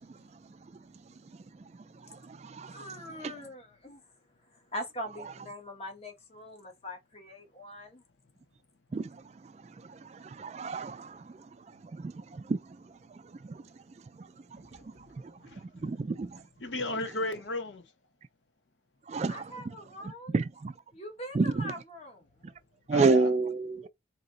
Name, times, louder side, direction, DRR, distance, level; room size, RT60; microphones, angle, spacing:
voice 1, 2.1-2.8 8.9-9.2 9.8-11.4 11.9-12.6 13.4-13.6 14.2-14.6 15.2-15.3 15.8-16.4 19.1-19.4 20.3-20.7 21.3-21.7 22.9-23.9, right 3 dB, 35° right, 0.3 m, -30 dB
voice 2, 2.7-4.0 4.5-8.0 19.3-20.3 20.9-22.3, equal, 35° left, 1.4 m, -42 dB
voice 3, 15.4-15.9 16.6-17.8 22.9-23.3, left 2 dB, 90° left, 1.0 m, -35 dB
4.1 x 2.9 x 3.8 m
head